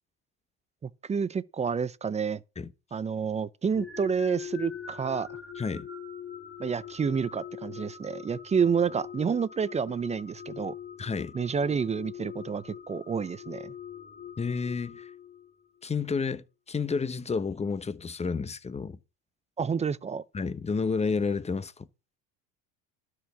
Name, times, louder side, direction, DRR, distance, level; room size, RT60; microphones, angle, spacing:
voice 1, 0.8-2.4 2.9-5.3 6.6-10.7 11.3-13.7 19.6-20.2, right 6 dB, 20° right, 0.5 m, -29 dB
sound 1, 3.7-15.7, left 8 dB, 35° left, 3.3 m, -43 dB
voice 2, 5.6-5.9 11.0-11.3 14.4-15.1 15.8-19.0 20.3-21.9, left 5 dB, 20° left, 0.9 m, -30 dB
12.5 x 4.7 x 6.8 m
supercardioid pair, 95°, 35 cm